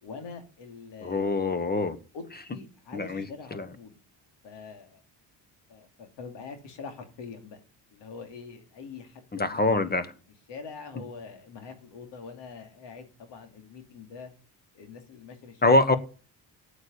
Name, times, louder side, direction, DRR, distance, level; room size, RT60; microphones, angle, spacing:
voice 1, 0.0-1.4 2.1-4.0 4.4-5.0 5.7-7.6 7.9-10.1 10.5-14.3 14.7-15.8, left 5 dB, 80° left, 6 dB, 2.8 m, -44 dB
voice 2, 1.0-2.0 2.9-3.3 3.5-3.6 9.3-10.1 15.6-16.0, left 2 dB, 20° left, 13 dB, 1.3 m, -24 dB
8.9 x 7.0 x 8.7 m, 0.38 s
cardioid pair, 100°, 42 cm